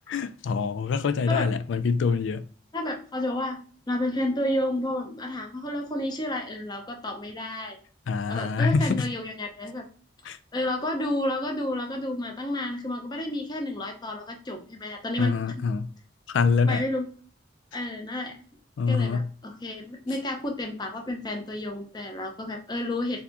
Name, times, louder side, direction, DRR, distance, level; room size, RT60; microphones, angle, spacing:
voice 1, 0.1-2.4 8.1-9.1 10.3-10.4 15.2-15.9 16.3-16.8 18.8-19.3, left 5 dB, 85° left, 0.4 m, -25 dB
voice 2, 2.7-3.6 3.9-7.8 8.3-9.8 10.5-15.4 16.7-17.1 17.7-18.4 18.9-23.2, left 1 dB, 25° left, 0.6 m, -31 dB
4.1 x 2.7 x 2.9 m
head